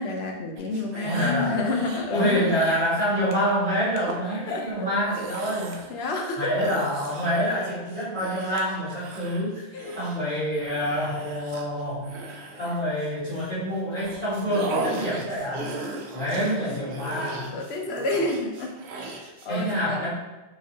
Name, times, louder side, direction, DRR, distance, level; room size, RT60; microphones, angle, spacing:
voice 1, 0.0-2.5 4.5-4.9 5.9-6.5 9.7-10.0 16.1-16.3 16.6-16.8 17.5-18.8 19.1-20.1, left 2 dB, 65° left, 1 dB, 0.9 m, -29 dB
sound 1, 0.6-2.1 2.4-2.9 3.3-3.5 4.0-4.2 4.9-6.0 6.6-13.5 13.9-19.5, right 2 dB, 70° right, 0.9 m, -37 dB
voice 2, 1.0-1.6 2.1-5.8 6.4-12.2 12.6-15.8 16.1-17.6 19.5-20.1, equal, 45° left, -14 dB, 1.8 m, -27 dB
4.6 x 3.2 x 2.9 m, 1.1 s
omnidirectional pair, 1.2 m